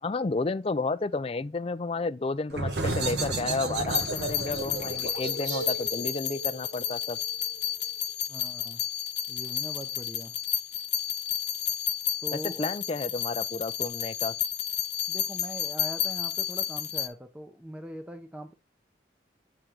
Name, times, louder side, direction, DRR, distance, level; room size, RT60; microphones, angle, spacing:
voice 1, 0.0-7.2 12.3-14.4, left 3 dB, 30° left, 0.4 m, -31 dB
sound 1, 2.5-7.9, right 2 dB, 75° right, 1.3 m, -33 dB
sound 2, 3.9-17.1, left 10 dB, 65° left, 1.1 m, -31 dB
voice 2, 8.3-8.8 9.3-10.4 12.2-12.7 15.1-18.5, right 1 dB, 5° right, 0.6 m, -41 dB
7.9 x 3.7 x 4.5 m
head